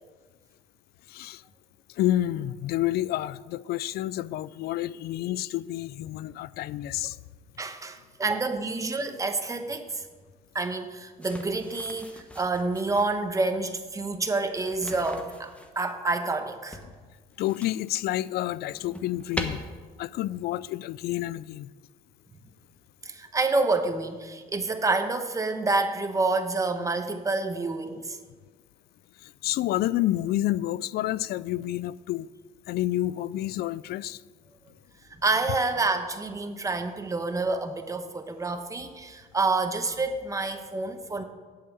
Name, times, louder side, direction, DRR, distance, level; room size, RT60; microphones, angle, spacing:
voice 1, 1.1-1.4 2.0-7.2 17.4-19.6 20.0-21.7 29.2-32.3 32.7-34.2, left 14 dB, 70° left, 19 dB, 0.4 m, -29 dB
voice 2, 7.6-10.0 10.5-16.8 23.0-28.2 35.2-41.2, right 3 dB, 20° right, 7 dB, 1.1 m, -28 dB
sound 1, 11.2-13.2 14.6-15.9 16.7-17.9 18.4-19.4, left 1 dB, 5° left, 1.2 m, -40 dB
8.7 x 8.5 x 7.2 m, 1.5 s
cardioid pair, 110°, 17 cm